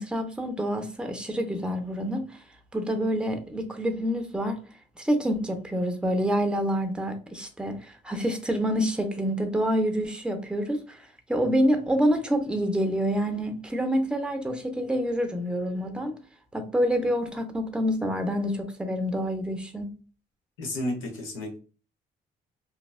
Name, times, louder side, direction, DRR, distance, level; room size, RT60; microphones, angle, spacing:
voice 1, 0.0-2.3 2.7-4.6 5.0-11.0 11.3-16.2 16.5-19.9, equal, 5° right, 0.5 m, -27 dB
voice 2, 20.6-21.6, left 1 dB, 85° left, 0.9 m, -32 dB
2.7 x 2.2 x 2.3 m
cardioid pair, 90°, 20 cm